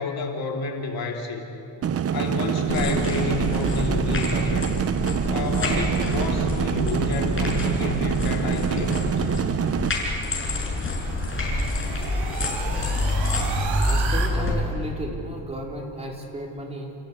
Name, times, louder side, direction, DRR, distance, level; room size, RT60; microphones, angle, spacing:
voice 1, 0.0-1.6 2.1-4.7 5.3-9.1, left 4 dB, 55° left, 1 dB, 2.9 m, -30 dB
sound 1, 1.8-9.9, right 8 dB, 35° right, 0.6 m, -25 dB
sound 2, 2.7-14.5, left 1 dB, 30° left, 6.1 m, -27 dB
sound 3, 10.3-14.3, right 6 dB, 90° right, 4.4 m, -34 dB
voice 2, 13.8-17.0, equal, 15° right, -2 dB, 4.2 m, -34 dB
29.0 x 16.5 x 8.3 m, 2.7 s
cardioid pair, 125°, 44 cm